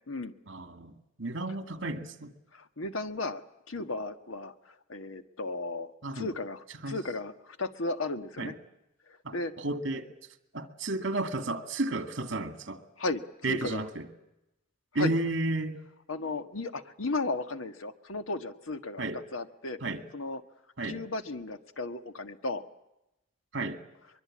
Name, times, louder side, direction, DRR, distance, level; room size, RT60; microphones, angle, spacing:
voice 1, 0.5-2.3 6.0-6.3 6.8-7.0 8.4-8.5 9.2-10.1 10.5-12.8 13.4-14.1 14.9-15.8 19.0-19.2 19.8-20.0 20.8-21.0 23.5-23.8, right 2 dB, 65° right, 9 dB, 2.2 m, -32 dB
voice 2, 2.5-3.4 3.7-4.5 4.9-8.5 9.3-9.5 13.0-13.8 15.0-15.1 16.1-19.8 20.1-20.4 20.8-22.6, left 2 dB, 90° left, 9 dB, 1.6 m, -35 dB
23.5 x 23.0 x 8.7 m, 0.91 s
head